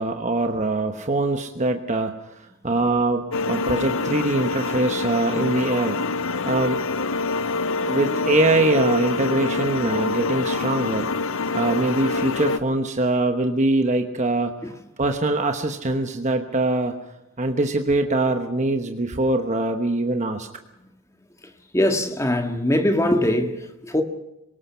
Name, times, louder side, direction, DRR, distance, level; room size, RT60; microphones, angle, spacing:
voice 1, 0.0-2.1 2.6-6.0 6.5-6.8 7.9-11.1 11.5-14.5 15.0-16.9 17.4-20.5, right 2 dB, 30° right, 1.1 m, -23 dB
sound 1, 3.3-12.6, left 3 dB, 60° left, 0.7 m, -25 dB
voice 2, 21.7-24.0, left 1 dB, 15° left, 1.7 m, -22 dB
26.5 x 18.0 x 5.7 m
head